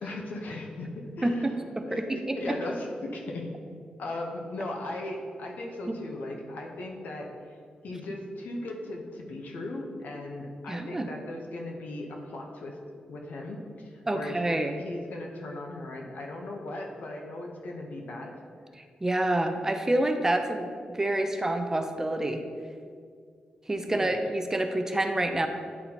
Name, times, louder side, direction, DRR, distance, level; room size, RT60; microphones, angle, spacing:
voice 1, 0.0-1.5 1.9-3.5 4.0-7.6 7.8-12.8 13.1-18.4 23.9-24.2, left 2 dB, 75° left, 1 dB, 0.9 m, -37 dB
voice 2, 1.2-2.6 5.9-6.0 10.7-11.1 14.1-14.8 19.0-22.4 23.7-25.5, right 1 dB, 15° right, 6 dB, 0.4 m, -28 dB
9.6 x 4.1 x 2.9 m, 2.1 s
wide cardioid pair, 115°, 3 cm